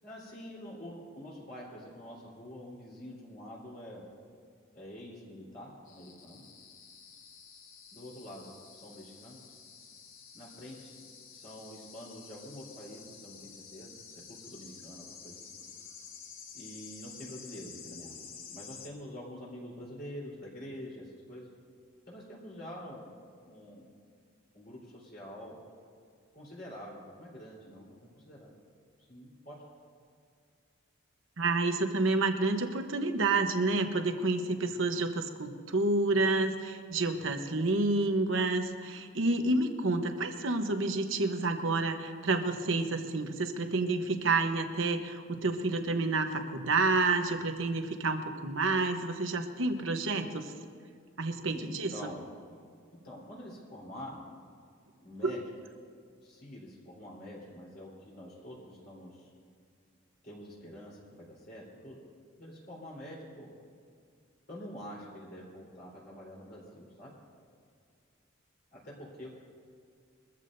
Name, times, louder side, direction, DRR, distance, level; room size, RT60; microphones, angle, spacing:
voice 1, 0.0-4.0 4.7-6.4 7.9-9.4 10.3-15.6 16.5-21.5 22.1-23.1 23.5-23.9 24.5-25.6 26.3-28.5 29.1-29.6 51.5-52.3 53.0-54.2 55.0-55.4 56.2-59.3 60.2-62.0 62.4-63.5 64.5-67.1 68.7-69.3, equal, 50° left, -5 dB, 3.8 m, -46 dB
sound 1, 5.9-18.9, left 6 dB, 85° left, 1.5 m, -50 dB
voice 2, 31.4-50.5 51.2-51.9 55.2-55.4, right 3 dB, 75° right, 6 dB, 1.0 m, -29 dB
22.5 x 14.5 x 2.7 m, 2.3 s
head